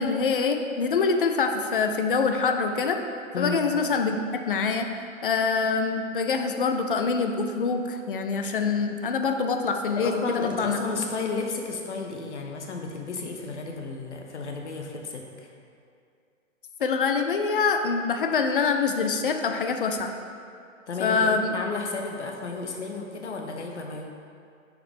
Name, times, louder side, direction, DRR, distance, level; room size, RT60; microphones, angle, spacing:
voice 1, 0.0-3.0 3.4-4.2 4.5-4.9 5.2-10.8 16.8-20.1 21.0-21.5, left 5 dB, 45° left, 5 dB, 0.5 m, -25 dB
voice 2, 9.9-15.5 20.9-24.0, left 3 dB, 60° left, 2 dB, 0.9 m, -33 dB
6.3 x 5.0 x 3.6 m, 2.4 s
figure-of-eight pair, 125°, 39 cm